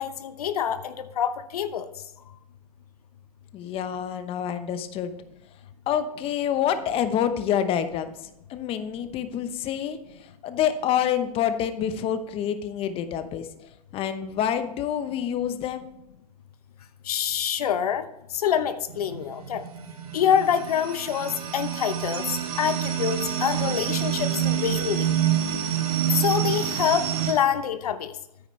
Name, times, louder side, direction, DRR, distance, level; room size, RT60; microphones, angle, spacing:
voice 1, 0.0-1.9 17.1-18.1 18.3-19.6 20.1-22.3 22.6-25.1 26.2-28.1, left 9 dB, 80° left, 11 dB, 0.9 m, -26 dB
voice 2, 3.5-5.1 5.9-13.5 13.9-15.9, left 9 dB, 30° left, 10 dB, 0.8 m, -27 dB
sound 1, 18.9-27.3, right 10 dB, 85° right, 3.1 m, -27 dB
9.5 x 9.1 x 3.2 m, 0.88 s
hypercardioid pair, 125°, 19 cm